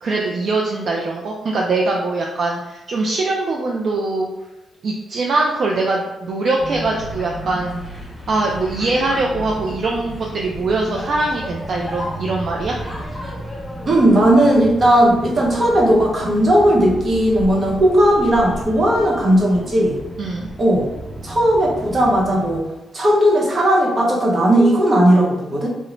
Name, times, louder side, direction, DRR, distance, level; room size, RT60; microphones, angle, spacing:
voice 1, 0.0-4.3 4.8-7.8 8.3-12.8 20.2-20.5, right 3 dB, 50° right, -1 dB, 0.3 m, -22 dB
sound 1, 6.6-22.6, equal, 10° left, 0.7 m, -33 dB
voice 2, 13.8-20.0 20.6-20.9 21.2-22.6 22.9-25.7, right 1 dB, 35° right, -2 dB, 0.8 m, -16 dB
3.8 x 2.0 x 3.0 m, 1.0 s
cardioid pair, 135°, 0 cm